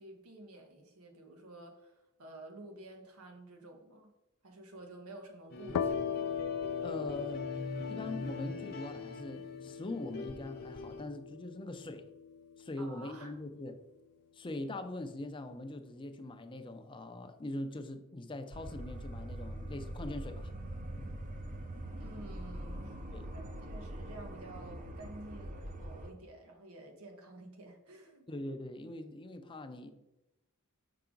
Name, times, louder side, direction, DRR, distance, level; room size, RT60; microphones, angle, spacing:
voice 1, 0.0-4.1 4.4-6.2 12.8-13.3 21.9-23.0 23.3-28.3, right 2 dB, 85° right, 1.3 m, -51 dB
sound 1, 5.5-11.0, left 3 dB, 45° left, 0.8 m, -44 dB
sound 2, 5.7-13.2, left 7 dB, 90° left, 0.3 m, -39 dB
voice 2, 6.8-7.5 7.9-12.1 12.6-13.8 14.3-20.5 20.9-21.1 23.1-23.3 28.3-29.9, left 2 dB, 25° left, 0.5 m, -42 dB
sound 3, 18.5-26.1, right 1 dB, 40° right, 0.6 m, -43 dB
5.7 x 4.8 x 3.8 m
head